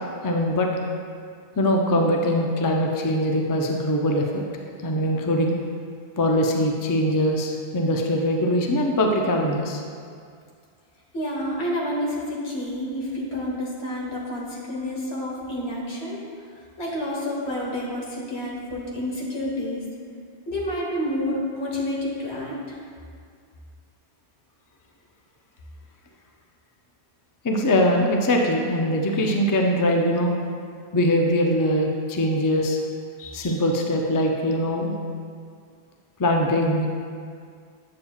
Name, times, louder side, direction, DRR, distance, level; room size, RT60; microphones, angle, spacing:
voice 1, 0.2-0.7 1.6-4.4 4.8-5.6 6.2-9.8 27.4-30.3 30.9-32.8 33.2-34.9 36.2-36.9, equal, 30° left, 1 dB, 0.4 m, -22 dB
voice 2, 11.1-16.2 16.8-19.8 20.5-22.8, left 1 dB, 75° left, -4 dB, 1.6 m, -29 dB
8.5 x 7.1 x 2.3 m, 2.2 s
omnidirectional pair, 1.1 m